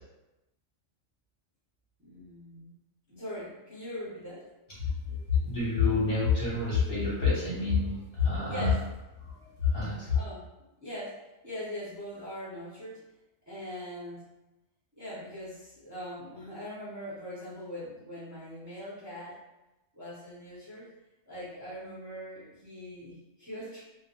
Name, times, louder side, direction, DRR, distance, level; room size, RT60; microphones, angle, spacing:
voice 1, 2.0-2.7 3.1-4.5 8.5-8.8 10.1-10.5 10.8-13.0 13.5-14.2 15.0-19.4 19.9-20.9 21.3-23.8, equal, 20° right, -11 dB, 0.6 m, -41 dB
voice 2, 5.1-8.8 9.2-9.3 9.6-10.2, left 5 dB, 50° left, -8 dB, 0.9 m, -27 dB
2.2 x 2.0 x 2.9 m, 1.0 s
omnidirectional pair, 1.4 m